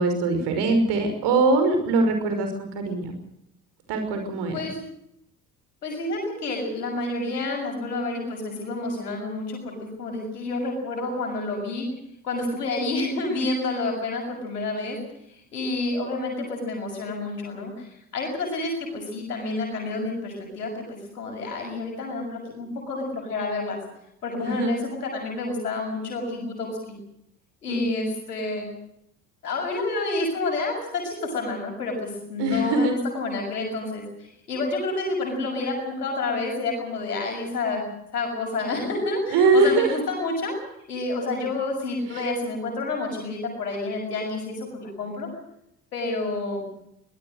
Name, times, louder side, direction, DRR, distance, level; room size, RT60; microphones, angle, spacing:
voice 1, 0.0-3.1 3.9-4.5 24.4-24.8 27.7-28.1 32.4-32.9 39.3-39.9 42.1-42.2, right 3 dB, 60° right, 6 dB, 5.7 m, -22 dB
voice 2, 5.8-11.9 12.2-15.0 15.3-23.8 24.2-27.0 27.6-28.7 29.4-37.9 38.1-40.6 40.9-45.3 45.9-46.7, left 2 dB, 85° left, 1 dB, 6.7 m, -29 dB
23.5 x 19.0 x 6.5 m, 0.76 s
figure-of-eight pair, 55°, 46 cm